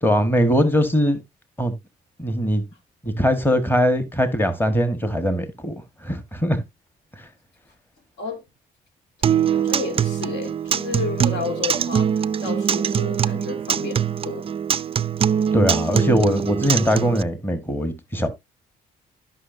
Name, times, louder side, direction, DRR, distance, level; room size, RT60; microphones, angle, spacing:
voice 1, 0.0-1.2 1.6-1.7 2.2-2.6 3.0-5.7 6.0-6.6 7.2-7.3 15.5-18.3, equal, 10° left, 1.5 m, -21 dB
voice 2, 9.2-14.5, left 4 dB, 70° left, 2.4 m, -32 dB
Acoustic guitar, 9.2-17.2, right 8 dB, 30° right, 0.4 m, -23 dB
12.5 x 5.8 x 2.6 m
cardioid pair, 85°, 19 cm